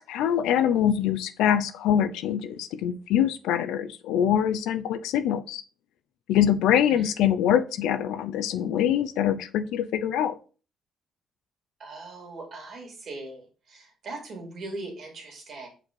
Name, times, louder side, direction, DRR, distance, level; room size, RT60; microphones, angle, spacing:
voice 1, 0.1-5.6 6.3-10.3, left 10 dB, 90° left, 0.5 m, -24 dB
voice 2, 11.8-15.7, right 2 dB, 55° right, 2.6 m, -40 dB
5.2 x 4.3 x 4.6 m
cardioid pair, 95°, 0 cm